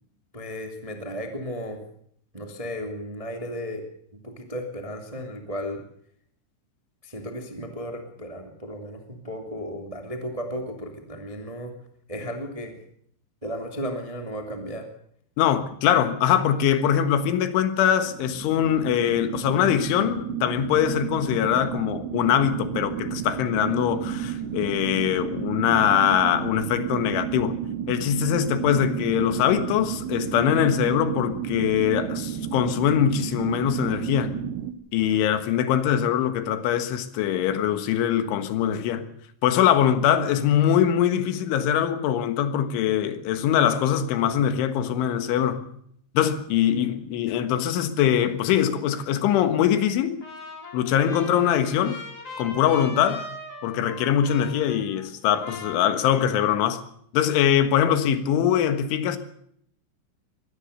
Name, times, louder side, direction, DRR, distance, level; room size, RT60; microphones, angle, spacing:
voice 1, 0.3-1.8 2.3-3.8 4.2-5.8 7.0-11.7 12.1-12.7 13.4-14.9, equal, 15° right, 1.3 m, -34 dB
voice 2, 15.4-27.6 27.9-34.4 34.9-39.1 39.4-45.7 46.2-50.2 50.7-52.0 52.4-53.3 53.6-56.8 57.1-59.2, left 9 dB, 85° left, 3.9 m, -22 dB
sound 1, 18.0-34.7, right 10 dB, 75° right, 3.2 m, -32 dB
Trumpet, 50.2-55.2 55.4-56.4, left 2 dB, 35° left, 4.6 m, -41 dB
22.5 x 17.5 x 6.6 m
omnidirectional pair, 5.4 m